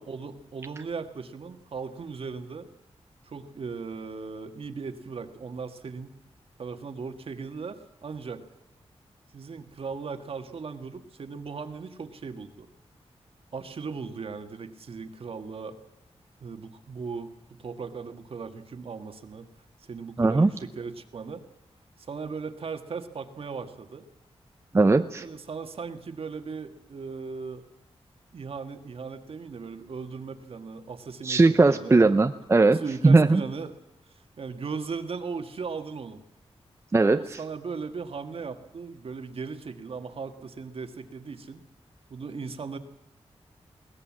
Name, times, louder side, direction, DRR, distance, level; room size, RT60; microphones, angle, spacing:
voice 1, 0.0-2.7 3.2-6.2 6.6-8.4 9.3-12.7 13.5-15.8 16.4-17.3 17.6-19.5 19.8-21.4 22.0-24.0 25.2-27.6 28.3-32.1 32.7-33.7 34.1-36.2 37.2-41.6 42.1-42.8, right 5 dB, 60° right, 8 dB, 1.7 m, -37 dB
voice 2, 20.2-20.5 24.7-25.2 31.2-33.4 36.9-37.4, right 3 dB, 25° right, 8 dB, 0.7 m, -19 dB
22.0 x 18.0 x 7.4 m, 0.89 s
wide cardioid pair, 140°, 11 cm